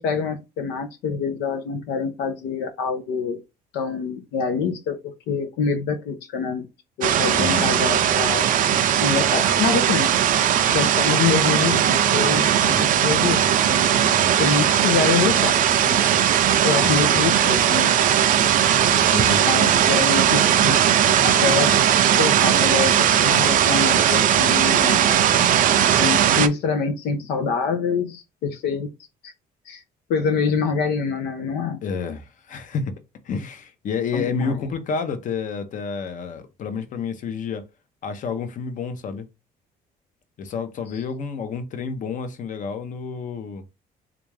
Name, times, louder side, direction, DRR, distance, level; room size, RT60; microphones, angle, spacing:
voice 1, 0.0-3.4 3.7-6.7 7.0-8.5 9.0-10.1 10.7-13.9 14.4-15.6 15.8-16.0 16.6-18.0 19.4-20.8 21.2-21.7 22.2-25.0 26.0-28.9 29.2-29.3 29.7-29.8 30.1-31.8 34.1-34.6, left 5 dB, 85° left, 0.6 m, -25 dB
sound 1, 7.0-26.5, right 10 dB, 55° right, 0.5 m, -18 dB
voice 2, 7.4-8.0 16.7-17.6 18.9-19.5 31.8-32.9 33.2-37.7 38.0-39.3 40.4-43.6, left 5 dB, 50° left, 0.7 m, -30 dB
3.5 x 2.5 x 3.2 m
cardioid pair, 110°, 17 cm